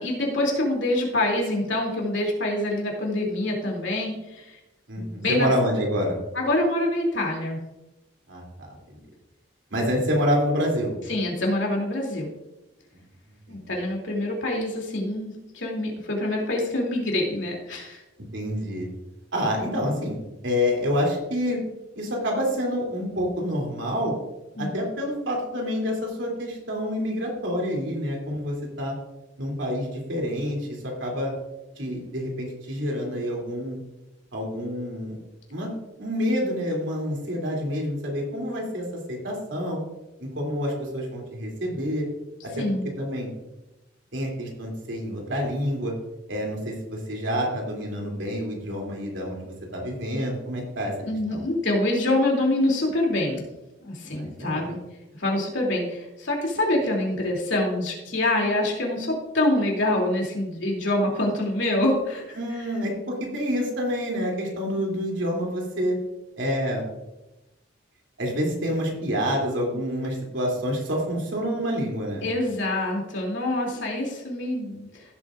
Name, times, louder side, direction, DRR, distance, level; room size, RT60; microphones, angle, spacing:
voice 1, 0.0-4.6 5.0-5.5 6.3-7.6 11.1-12.3 13.5-18.0 24.6-24.9 42.5-42.9 51.0-53.4 53.8-54.8 55.2-62.7 72.2-74.9, left 1 dB, 70° left, -1 dB, 2.9 m, -26 dB
voice 2, 4.9-6.2 8.3-9.0 9.7-10.9 13.5-13.6 18.3-18.9 19.3-20.2 20.4-21.6 21.9-24.2 24.6-28.9 29.4-31.3 31.8-33.8 34.3-35.2 35.5-35.7 36.0-39.8 40.2-42.1 42.4-42.6 43.0-43.3 44.1-45.9 46.3-49.5 49.7-50.9 51.3-51.4 54.1-54.6 62.4-66.0 66.4-66.8 68.2-72.2, equal, 75° right, -1 dB, 3.0 m, -27 dB
15.5 x 8.3 x 2.5 m, 0.99 s
head